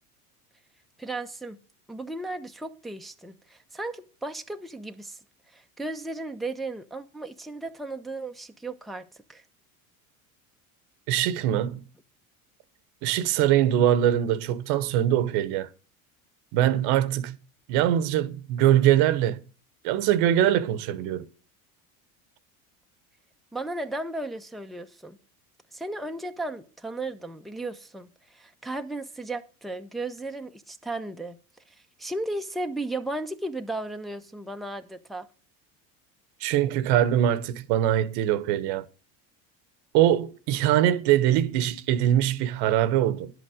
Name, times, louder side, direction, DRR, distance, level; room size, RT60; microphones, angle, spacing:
voice 1, 1.0-1.6 1.9-5.2 5.5-9.4 23.5-25.2 25.7-31.4 32.0-35.3, right 2 dB, ahead, 0.9 m, -35 dB
voice 2, 11.1-11.8 13.0-15.7 16.5-17.4 17.7-19.4 19.8-21.3 36.4-38.8 39.9-43.3, right 11 dB, 65° right, 1.1 m, -22 dB
11.0 x 8.1 x 5.1 m
hypercardioid pair, 85°, 44 cm